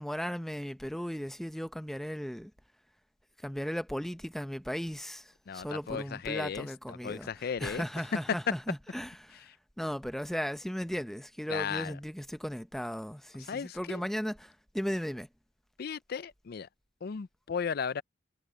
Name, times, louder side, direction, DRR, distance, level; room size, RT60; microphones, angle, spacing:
voice 1, 0.0-2.5 3.4-9.5 9.8-15.3, equal, ahead, 0.7 m, -36 dB
voice 2, 5.5-7.8 11.5-12.0 13.5-14.0 15.8-16.7 17.0-18.0, left 6 dB, 50° left, 0.4 m, -36 dB
head